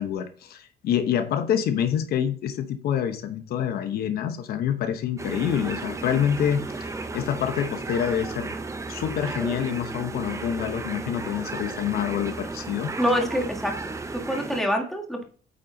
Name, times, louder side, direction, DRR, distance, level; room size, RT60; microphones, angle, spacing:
voice 1, 0.0-6.6 7.1-8.5 8.9-12.9, left 9 dB, 65° left, 0.9 m, -26 dB
sound 1, 5.2-14.6, right 3 dB, 20° right, 0.8 m, -34 dB
voice 2, 13.0-15.2, equal, ahead, 1.7 m, -26 dB
8.8 x 4.4 x 3.9 m
cardioid pair, 110°, 17 cm